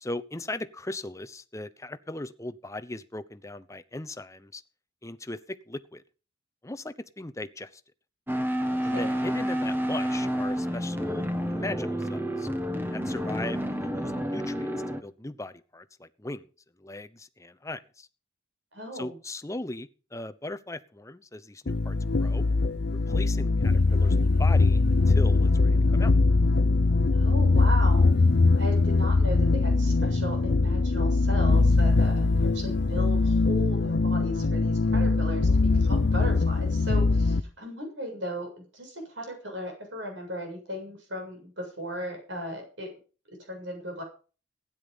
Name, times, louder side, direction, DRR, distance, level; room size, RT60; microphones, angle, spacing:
voice 1, 0.0-4.6 5.0-6.0 6.6-7.7 8.8-11.2 11.5-12.5 12.9-14.7 15.0-16.5 16.8-18.1 18.9-22.5 23.1-26.1, left 2 dB, 15° left, 12 dB, 0.9 m, -38 dB
sound 1, 8.3-15.0, equal, 10° right, 1.3 m, -29 dB
voice 2, 8.8-9.1 18.7-19.2 27.1-28.1 28.6-42.9 43.4-44.0, equal, 70° right, 3 dB, 7.4 m, -37 dB
sound 2, 21.7-37.4, left 3 dB, 55° left, 0.6 m, -22 dB
16.5 x 10.0 x 5.4 m, 0.37 s
head